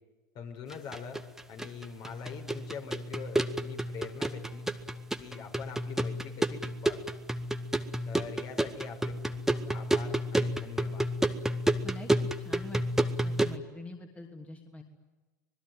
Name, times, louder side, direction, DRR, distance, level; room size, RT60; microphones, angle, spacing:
voice 1, 0.3-1.2 1.5-4.7 5.2-7.1 8.1-11.1, left 6 dB, 45° left, 5 dB, 5.1 m, -43 dB
sound 1, 0.7-13.6, right 1 dB, 5° right, 1.4 m, -31 dB
voice 2, 11.8-14.8, left 2 dB, 15° left, 3 dB, 3.0 m, -45 dB
25.5 x 20.5 x 9.3 m, 1.2 s
hypercardioid pair, 90°, 10 cm